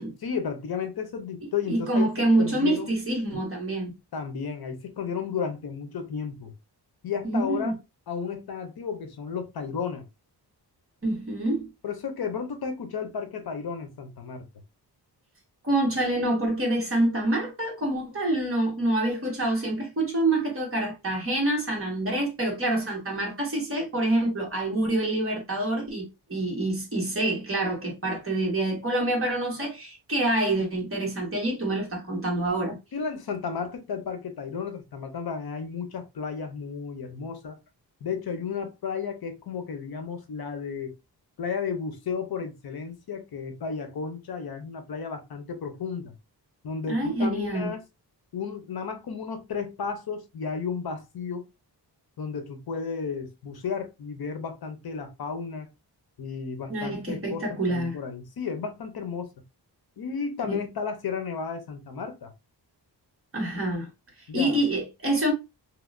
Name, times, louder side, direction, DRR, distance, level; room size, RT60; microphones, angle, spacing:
voice 1, 0.2-2.9 4.1-6.5 7.0-7.8 8.1-10.1 11.8-14.5 32.9-37.6 38.0-41.0 41.4-46.1 46.6-47.8 48.3-51.5 52.2-55.7 56.2-59.3 60.0-62.3 64.3-64.6, left 6 dB, 60° left, 0.7 m, -33 dB
voice 2, 1.7-3.9 7.2-7.7 11.0-11.7 15.6-32.8 46.9-47.7 56.7-58.0 60.5-60.6 63.3-63.9 64.3-65.3, right 1 dB, 30° right, 1.5 m, -26 dB
3.1 x 2.9 x 2.4 m
wide cardioid pair, 130°, 41 cm